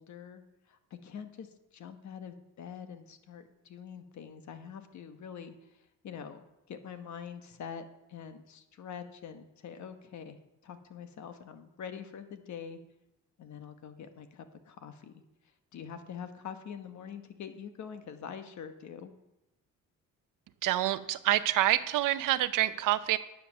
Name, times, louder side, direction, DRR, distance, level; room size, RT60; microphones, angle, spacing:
voice 1, 0.0-10.4 10.6-12.8 13.4-15.2 15.7-19.1, left 7 dB, 65° left, 8 dB, 1.2 m, -45 dB
voice 2, 20.6-23.2, right 14 dB, 80° right, 13 dB, 0.7 m, -27 dB
10.5 x 7.7 x 6.1 m, 0.93 s
cardioid pair, 105°, 32 cm